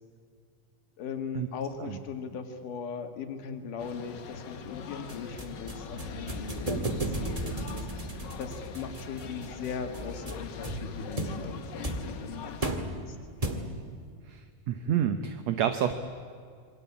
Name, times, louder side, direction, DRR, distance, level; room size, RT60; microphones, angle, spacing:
voice 1, 1.0-12.6 13.1-13.2, left 6 dB, 75° left, 6 dB, 3.5 m, -39 dB
sound 1, 3.8-12.7, left 6 dB, 55° left, 1.2 m, -43 dB
sound 2, 5.1-14.0, right 1 dB, 15° right, 1.3 m, -36 dB
voice 2, 14.3-15.9, right 9 dB, 65° right, 9 dB, 2.0 m, -29 dB
27.5 x 23.5 x 8.6 m, 2.2 s
omnidirectional pair, 3.7 m